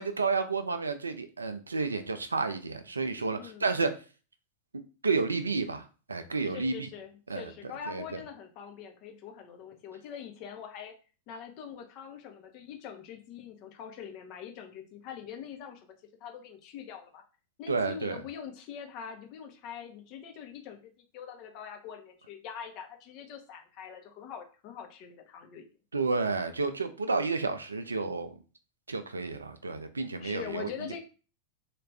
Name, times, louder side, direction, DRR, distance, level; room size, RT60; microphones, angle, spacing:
voice 1, 0.0-4.0 5.0-5.8 6.1-6.9 7.3-7.5 7.9-8.0 17.7-18.2 25.9-28.3 28.9-30.7, right 4 dB, 75° right, 9 dB, 0.4 m, -31 dB
voice 2, 3.3-3.7 6.4-10.9 11.3-15.9 16.2-17.2 17.6-25.7 30.2-31.0, left 7 dB, 40° left, 4 dB, 0.7 m, -43 dB
3.2 x 2.4 x 3.3 m, 0.35 s
figure-of-eight pair, 90°, 0 cm